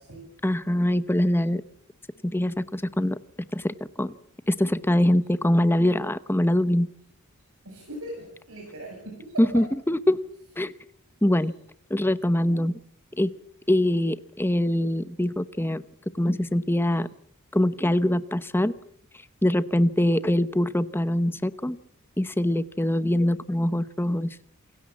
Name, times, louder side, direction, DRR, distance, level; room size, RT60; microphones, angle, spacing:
voice 1, 0.4-1.6 2.2-3.2 3.5-4.1 4.5-6.9 9.4-10.2 10.6-10.7 11.2-11.5 11.9-12.8 13.1-13.3 13.7-15.8 16.2-17.1 17.5-18.7 19.4-21.8 22.2-24.4, left 1 dB, 10° left, 14 dB, 0.8 m, -23 dB
voice 2, 7.6-9.6, right 1 dB, 65° right, 1 dB, 7.5 m, -39 dB
27.5 x 17.0 x 7.4 m, 0.68 s
head